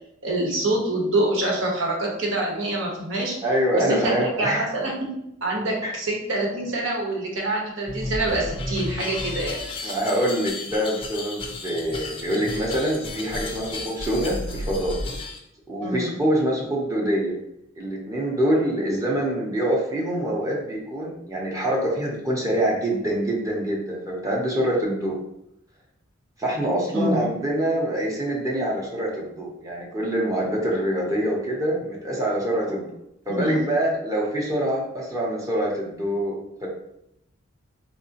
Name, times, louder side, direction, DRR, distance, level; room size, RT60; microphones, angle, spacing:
voice 1, 0.2-3.4 3.7-5.1 5.4-10.0 15.8-16.2 26.9-27.3 33.3-33.7, right 1 dB, 75° right, -1 dB, 1.0 m, -26 dB
voice 2, 3.4-4.6 5.8-5.9 9.8-15.0 15.7-17.4 17.8-25.2 26.4-32.9 33.3-36.7, right 1 dB, 15° right, -3 dB, 0.7 m, -25 dB
sound 1, 7.9-15.4, left 2 dB, 25° left, 0.4 m, -33 dB
3.6 x 2.9 x 2.8 m, 0.82 s
head